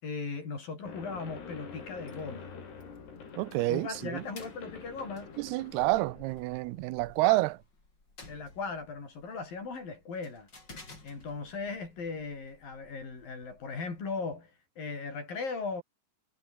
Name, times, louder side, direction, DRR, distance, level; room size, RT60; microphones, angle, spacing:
voice 1, 0.0-2.5 3.7-5.3 8.3-10.5 11.0-15.8, left 4 dB, 60° left, 8.3 m, -38 dB
sound 1, 0.9-6.9, left 5 dB, 85° left, 7.9 m, -46 dB
sound 2, 1.7-14.1, left 3 dB, 25° left, 6.3 m, -56 dB
voice 2, 3.4-4.2 5.5-7.6, right 19 dB, 85° right, 2.7 m, -28 dB
omnidirectional pair, 4.6 m